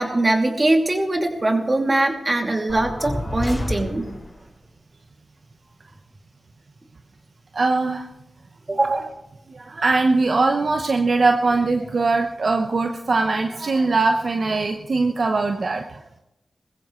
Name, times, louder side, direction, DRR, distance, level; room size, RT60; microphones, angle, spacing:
voice 1, 0.0-4.1 8.7-9.1, right 2 dB, 40° right, 3 dB, 2.7 m, -21 dB
sound 1, 2.7-4.4, left 1 dB, 25° left, 5.6 m, -29 dB
voice 2, 7.5-8.1 8.8-9.0 9.5-16.0, right 3 dB, 65° right, 4 dB, 1.0 m, -21 dB
20.5 x 15.0 x 3.2 m, 0.88 s
cardioid pair, 45°, 0 cm